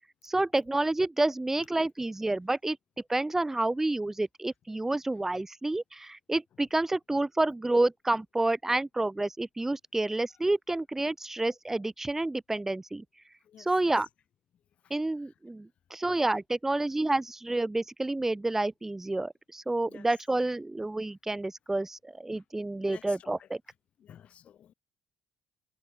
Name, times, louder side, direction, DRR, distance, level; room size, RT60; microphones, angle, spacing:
voice 1, 0.2-2.8 3.1-13.0 13.6-14.1 14.9-23.6, right 2 dB, 15° right, 1.1 m, -29 dB
voice 2, 13.4-13.9 14.8-14.9 15.2-15.3 19.9-20.1 22.9-23.5 24.0-24.7, left 9 dB, 60° left, 5.3 m, -53 dB
hypercardioid pair, 55°, 2 cm